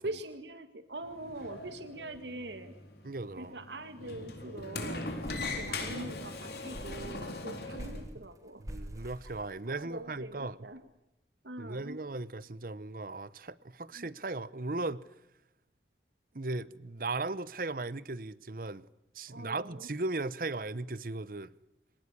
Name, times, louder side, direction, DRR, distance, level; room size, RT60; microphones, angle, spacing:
voice 1, 0.0-2.7 3.4-5.1 5.5-8.6 9.2-9.4 9.6-10.9 11.4-12.0 13.9-14.1 19.3-19.9, right 2 dB, 85° right, 2.1 m, -43 dB
Sliding door, 1.0-8.0, left 2 dB, 65° left, 4.1 m, -40 dB
voice 2, 3.0-3.6 8.6-10.6 11.6-15.0 16.3-18.9 19.1-21.5, right 2 dB, 50° right, 0.9 m, -37 dB
sound 1, 3.2-3.5 3.7-3.8 4.2-4.5 4.9-6.3 6.7-10.0, equal, 20° right, 4.1 m, -46 dB
25.5 x 18.5 x 9.7 m
head